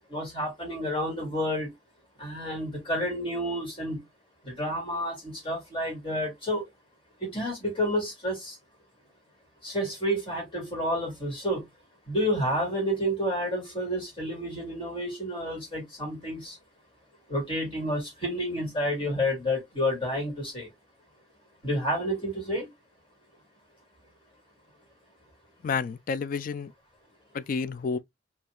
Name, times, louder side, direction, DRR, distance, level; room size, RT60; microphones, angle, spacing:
voice 1, 0.1-1.7 2.2-4.0 4.4-6.7 7.2-8.6 9.6-11.7 12.1-16.6 17.3-20.7 21.6-22.7, equal, 30° left, 2.1 m, -30 dB
voice 2, 25.6-26.7 27.3-28.0, left 5 dB, 50° left, 0.3 m, -30 dB
4.2 x 2.8 x 2.2 m
head